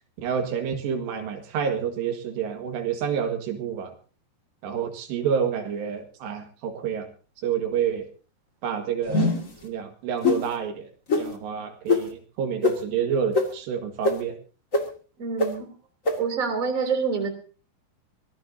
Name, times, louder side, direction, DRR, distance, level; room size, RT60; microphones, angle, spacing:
voice 1, 0.2-3.9 4.6-7.1 7.4-8.1 8.6-9.3 9.6-10.9 11.2-14.3, right 7 dB, 80° right, 5 dB, 4.0 m, -28 dB
sound 1, 9.1-9.5 10.2-10.4 11.1-11.2 11.9-12.0 12.6-12.7 13.3-13.4 14.0-14.1 14.7-14.8 15.4-15.5 16.0-16.1, left 3 dB, 30° left, 1.6 m, -21 dB
voice 2, 15.2-15.7 16.2-17.3, right 5 dB, 20° right, 4 dB, 3.1 m, -26 dB
24.5 x 17.0 x 2.8 m, 0.38 s
omnidirectional pair, 4.9 m